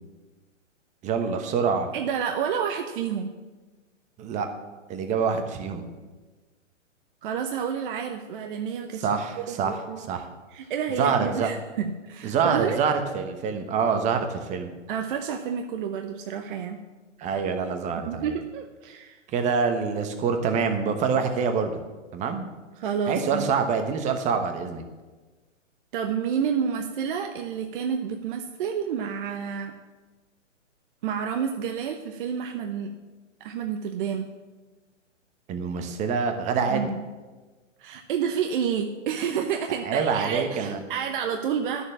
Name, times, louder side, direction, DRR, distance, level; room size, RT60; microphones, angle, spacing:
voice 1, 1.0-1.9 4.2-4.5 4.9-5.9 9.0-9.8 10.1-10.3 11.0-11.5 12.2-14.7 17.2-18.3 19.3-21.8 22.1-22.5 23.1-24.8 35.5-36.8 39.8-40.8, right 6 dB, 20° right, 6 dB, 1.1 m, -26 dB
voice 2, 1.9-3.3 7.2-10.1 10.5-12.8 14.9-16.8 18.1-19.2 22.8-23.4 25.9-29.7 31.0-32.9 33.4-34.3 36.7-37.1 37.8-41.8, right 7 dB, 40° right, 5 dB, 0.9 m, -29 dB
11.0 x 7.1 x 7.3 m, 1.3 s
hypercardioid pair, 140°, 38 cm